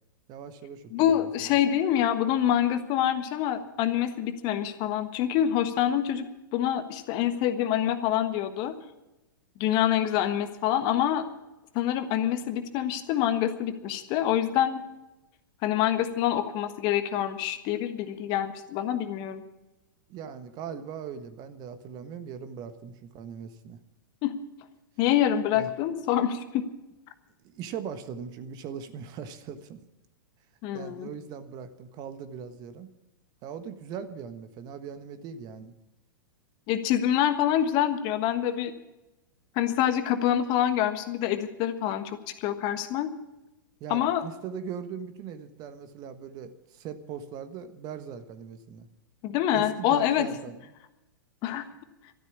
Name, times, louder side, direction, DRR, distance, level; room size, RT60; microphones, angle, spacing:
voice 1, 0.3-1.5 20.1-23.8 25.5-25.7 27.4-29.8 30.7-32.9 33.4-35.7 43.8-48.9 49.5-50.6, right 7 dB, 35° right, 10 dB, 1.3 m, -40 dB
voice 2, 0.9-6.2 6.5-8.7 9.6-11.2 11.7-14.8 15.6-19.4 24.2-24.4 25.0-26.6 30.6-31.1 36.7-38.7 39.5-43.1 43.9-44.2 49.2-50.3 51.4-51.7, left 11 dB, 40° left, 9 dB, 1.4 m, -26 dB
13.0 x 12.0 x 8.5 m, 0.99 s
figure-of-eight pair, 100°, 11 cm